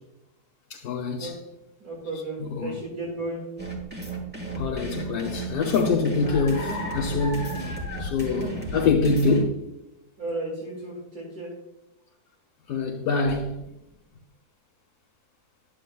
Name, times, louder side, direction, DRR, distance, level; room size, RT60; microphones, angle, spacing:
voice 1, 0.7-1.3 2.4-2.8 4.6-9.7 12.7-13.7, left 4 dB, 70° left, 1.2 m, -25 dB
voice 2, 1.8-3.4 10.2-11.5, right 2 dB, 65° right, 2.5 m, -34 dB
sound 1, 3.6-9.4, right 2 dB, 5° right, 1.2 m, -34 dB
10.0 x 7.9 x 2.3 m
omnidirectional pair, 1.7 m